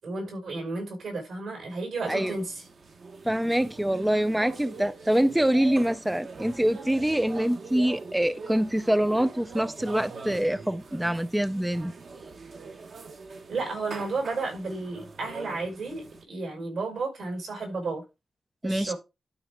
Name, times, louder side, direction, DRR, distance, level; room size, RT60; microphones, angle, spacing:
voice 1, 0.0-2.6 13.5-18.0 18.6-18.9, right 3 dB, 75° right, 5.4 m, -32 dB
sound 1, 2.0-16.2, right 4 dB, 50° right, 1.0 m, -42 dB
voice 2, 3.2-11.9 18.6-18.9, right 1 dB, 5° right, 0.3 m, -25 dB
12.0 x 5.1 x 3.5 m
wide cardioid pair, 170°, 0 cm